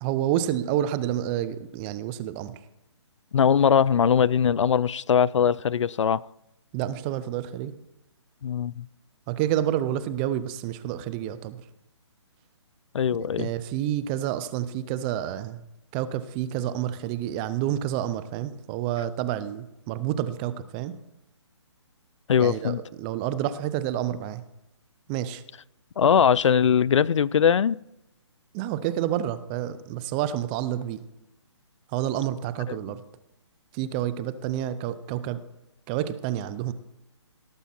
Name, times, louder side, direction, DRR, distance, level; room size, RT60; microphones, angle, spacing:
voice 1, 0.0-2.6 6.7-7.7 9.3-11.6 13.4-15.6 15.9-20.9 22.4-24.4 25.1-25.4 28.5-31.0 31.9-33.0 33.7-35.4 35.9-36.7, right 11 dB, 20° right, 14 dB, 0.5 m, -29 dB
voice 2, 3.3-6.2 8.4-8.9 12.9-13.5 22.3-22.8 26.0-27.8 32.7-32.8, left 7 dB, 80° left, 22 dB, 0.4 m, -21 dB
17.5 x 7.1 x 4.3 m, 0.88 s
hypercardioid pair, 150°, 15 cm